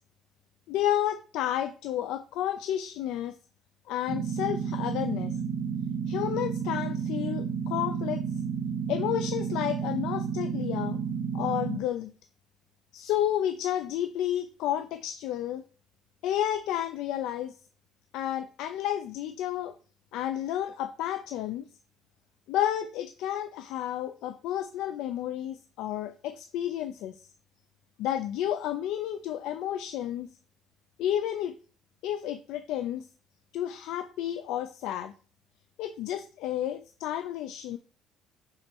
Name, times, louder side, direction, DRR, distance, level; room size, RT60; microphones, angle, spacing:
voice 1, 0.7-3.3 3.9-5.3 6.1-8.2 8.9-11.0 11.3-12.1 12.9-15.6 16.2-17.5 18.1-19.8 20.1-21.7 22.5-27.2 28.0-30.3 31.0-31.5 32.0-33.0 33.5-35.1 35.8-37.8, left 11 dB, 75° left, 9 dB, 0.5 m, -31 dB
sound 1, 4.1-11.8, right 6 dB, 50° right, 1.2 m, -31 dB
5.7 x 4.2 x 5.3 m, 0.40 s
cardioid pair, 130°, 0 cm